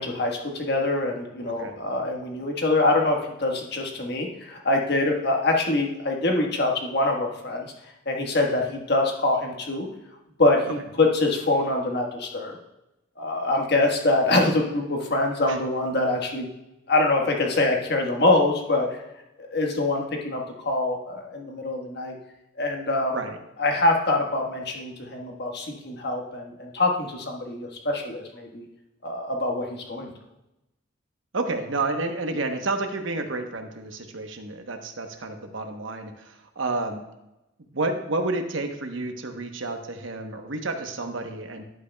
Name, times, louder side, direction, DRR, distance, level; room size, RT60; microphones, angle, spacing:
voice 1, 0.0-7.7 8.0-9.9 10.4-12.6 13.2-16.4 16.9-19.0 19.4-22.1 22.6-23.2 23.6-28.7 29.0-30.1, left 2 dB, 55° left, 1 dB, 1.4 m, -24 dB
voice 2, 31.3-37.0 37.7-41.6, right 2 dB, 70° right, 5 dB, 1.0 m, -30 dB
11.0 x 8.5 x 2.3 m, 0.92 s
head